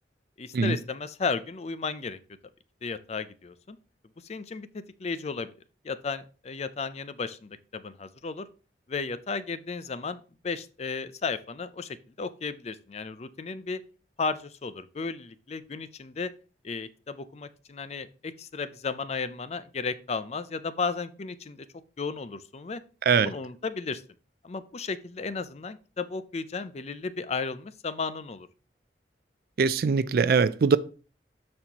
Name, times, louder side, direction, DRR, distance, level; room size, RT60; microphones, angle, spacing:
voice 1, 0.4-2.2 2.8-3.8 4.3-5.5 5.8-8.5 8.9-13.8 14.2-16.3 16.6-21.7 22.0-22.8 23.2-24.0 24.4-28.5, left 4 dB, 35° left, 0.4 m, -34 dB
voice 2, 29.6-30.8, right 5 dB, 55° right, 0.4 m, -22 dB
12.5 x 4.3 x 2.9 m
head